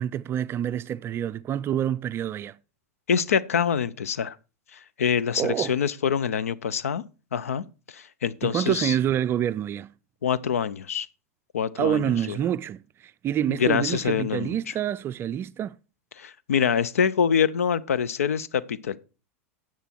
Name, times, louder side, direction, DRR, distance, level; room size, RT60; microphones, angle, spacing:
voice 1, 0.0-2.6 5.4-5.8 8.4-9.9 11.8-15.8, right 10 dB, 30° right, 0.4 m, -27 dB
voice 2, 3.1-4.4 4.7-7.0 7.3-8.9 10.2-11.1 11.5-12.4 13.5-14.6 16.2-19.0, left 7 dB, 80° left, 0.5 m, -25 dB
10.0 x 7.6 x 4.4 m
hypercardioid pair, 95°, 8 cm